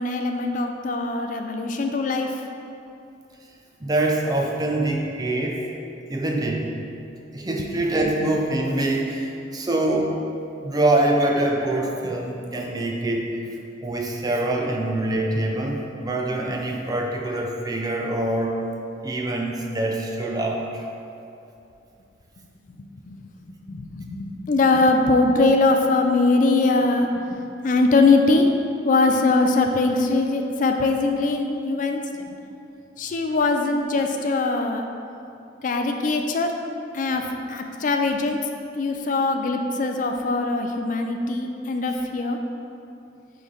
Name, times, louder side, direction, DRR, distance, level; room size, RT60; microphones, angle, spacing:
voice 1, 0.0-2.4 23.1-23.2 23.6-28.5 28.8-32.2 33.0-34.9 35.6-36.5 36.9-38.4 38.8-42.4, left 3 dB, 45° left, 5 dB, 0.4 m, -22 dB
voice 2, 3.8-5.6 6.1-6.7 7.3-10.2 10.6-13.5 13.8-18.6 19.0-20.9, right 1 dB, 20° right, 0 dB, 0.5 m, -24 dB
7.9 x 3.3 x 3.7 m, 2.7 s
head